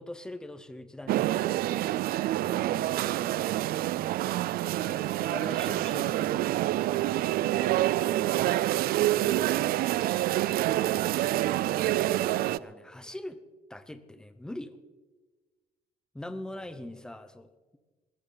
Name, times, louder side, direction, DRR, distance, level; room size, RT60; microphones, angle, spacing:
voice 1, 0.0-1.3 2.5-2.7 4.6-6.6 12.6-13.4 13.7-14.7 16.1-17.8, left 1 dB, 5° left, 11 dB, 0.8 m, -42 dB
sound 1, 1.1-12.6, right 14 dB, 70° right, 0.4 m, -27 dB
voice 2, 16.5-16.9, right 2 dB, 35° right, -3 dB, 3.0 m, -51 dB
19.5 x 16.0 x 4.0 m, 1.3 s
cardioid pair, 170°, 16 cm